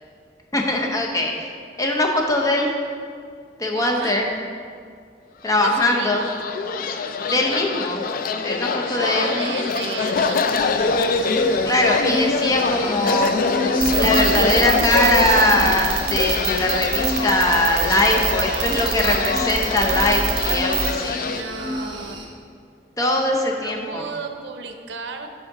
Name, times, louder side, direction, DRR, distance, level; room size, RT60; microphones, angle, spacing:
voice 1, 0.5-1.5 1.8-2.7 3.6-4.3 5.4-6.2 7.3-8.1 8.4-9.7 11.6-13.3 14.0-21.2 23.0-24.0, left 1 dB, 20° left, 0 dB, 0.7 m, -21 dB
voice 2, 3.7-4.2 5.5-6.3 8.8-10.9 18.4-18.8 21.3-22.2 23.3-25.3, right 5 dB, 75° right, 6 dB, 0.6 m, -34 dB
sound 1, 5.6-21.4, left 4 dB, 50° left, 0.3 m, -24 dB
sound 2, 10.5-22.3, equal, 25° right, 1.0 m, -32 dB
sound 3, 13.8-20.9, right 6 dB, 55° right, 0.9 m, -24 dB
6.3 x 4.9 x 4.9 m, 2.2 s
head